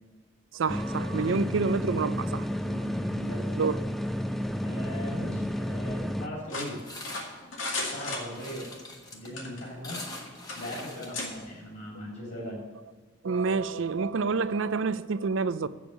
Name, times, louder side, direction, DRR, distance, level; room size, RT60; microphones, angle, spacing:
voice 1, 0.5-2.8 3.6-3.8 13.2-15.7, right 4 dB, 75° right, 15 dB, 0.5 m, -28 dB
sound 1, 0.7-6.3, equal, ahead, 0.3 m, -31 dB
voice 2, 2.6-3.7 4.6-6.8 7.9-8.7 9.1-10.1 10.5-12.6, left 1 dB, 50° left, -6 dB, 3.4 m, -39 dB
sound 2, 6.5-8.7 9.3-10.2 10.5-10.6 11.1-11.3, left 2 dB, 85° left, 2.2 m, -35 dB
sound 3, 6.6-11.9, left 2 dB, 20° left, 1.2 m, -44 dB
7.9 x 7.2 x 8.2 m, 1.5 s
head